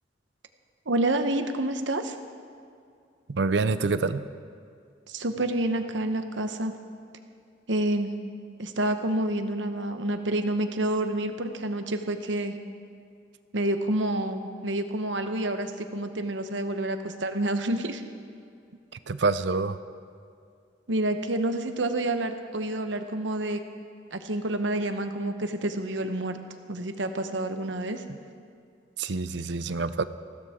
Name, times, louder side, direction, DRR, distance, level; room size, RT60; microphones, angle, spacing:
voice 1, 0.9-2.1 5.1-6.7 7.7-8.1 8.6-12.5 13.5-18.0 20.9-23.6 24.1-26.4 26.7-28.0, right 1 dB, 85° right, 7 dB, 1.1 m, -28 dB
voice 2, 3.3-4.2 19.1-19.8 29.0-30.0, right 4 dB, 70° right, 12 dB, 0.6 m, -26 dB
20.5 x 15.5 x 3.7 m, 2.3 s
head